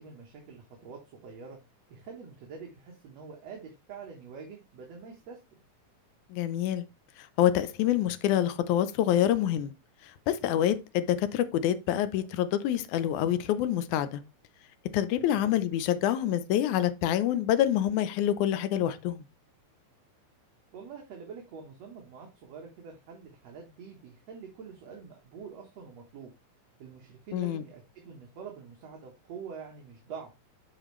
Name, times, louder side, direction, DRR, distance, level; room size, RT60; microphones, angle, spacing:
voice 1, 0.0-1.6 1.9-5.4 15.3-15.6 20.7-26.3 26.8-30.3, right 6 dB, 60° right, 2.2 m, -46 dB
voice 2, 6.3-6.8 7.4-9.7 10.3-14.2 14.9-19.2 27.3-27.6, left 11 dB, 75° left, 1.9 m, -26 dB
8.7 x 4.9 x 3.1 m
omnidirectional pair, 3.9 m